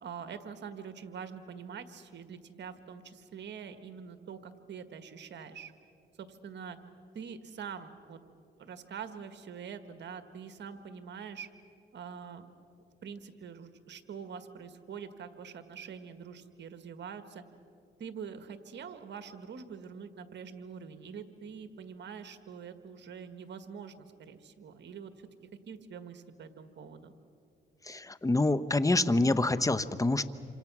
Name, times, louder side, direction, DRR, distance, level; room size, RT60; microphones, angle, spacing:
voice 1, 0.0-5.7 6.2-6.8 7.2-8.2 8.6-11.5 11.9-12.5 13.0-17.4 18.0-25.3 25.7-27.1, right 7 dB, 70° right, 10 dB, 1.7 m, -44 dB
voice 2, 27.9-30.2, left 2 dB, 15° left, 14 dB, 1.0 m, -26 dB
27.5 x 26.0 x 6.2 m, 2.5 s
cardioid pair, 70°, 19 cm